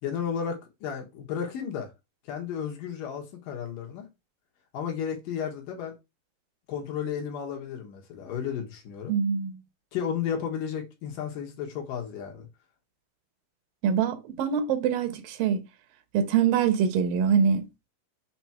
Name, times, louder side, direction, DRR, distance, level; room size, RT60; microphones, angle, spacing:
voice 1, 0.0-1.9 2.2-4.1 4.7-6.0 6.7-9.2 9.9-12.5, left 8 dB, 75° left, 2.8 m, -33 dB
voice 2, 9.1-9.6 13.8-15.6 16.1-17.7, right 7 dB, 80° right, 2.5 m, -24 dB
6.8 x 3.0 x 5.9 m
omnidirectional pair, 4.1 m